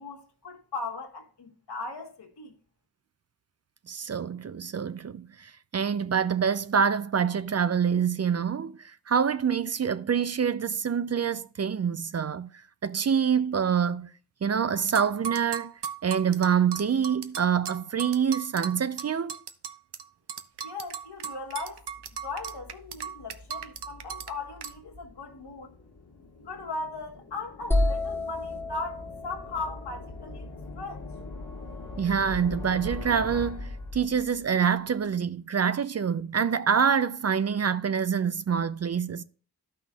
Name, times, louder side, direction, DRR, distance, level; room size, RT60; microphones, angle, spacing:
voice 1, 0.0-2.5 20.6-21.9 22.2-25.7 26.4-30.4 30.8-31.1, left 3 dB, 75° left, 1.4 m, -38 dB
voice 2, 3.9-12.5 12.8-14.1 14.4-15.7 16.0-19.4 32.0-39.2, right 7 dB, 40° right, 0.4 m, -26 dB
sound 1, 14.9-20.0 20.3-24.3 24.6-24.7, right 7 dB, 80° right, 0.6 m, -36 dB
sound 2, 21.6-34.6, left 2 dB, 60° left, 1.5 m, -42 dB
sound 3, 27.7-31.5, left 2 dB, 5° left, 1.1 m, -31 dB
13.0 x 5.7 x 2.4 m
cardioid pair, 45°, 40 cm